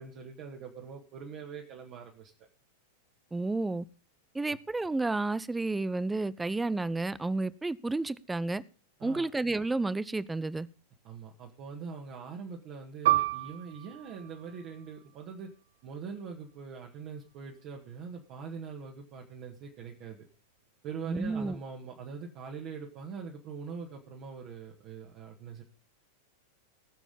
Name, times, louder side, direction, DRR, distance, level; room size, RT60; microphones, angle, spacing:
voice 1, 0.0-2.3 9.0-9.3 11.0-15.5 15.8-20.2 20.8-25.6, right 5 dB, 40° right, 0 dB, 2.0 m, -43 dB
voice 2, 3.3-3.8 4.3-8.6 9.0-10.7 21.1-21.6, right 2 dB, 10° right, 19 dB, 0.6 m, -31 dB
Piano, 13.1-18.1 18.4-18.6 19.4-19.7, right 15 dB, 55° right, 0.5 m, -33 dB
19.0 x 7.2 x 5.4 m, 0.37 s
figure-of-eight pair, 90°, 0 cm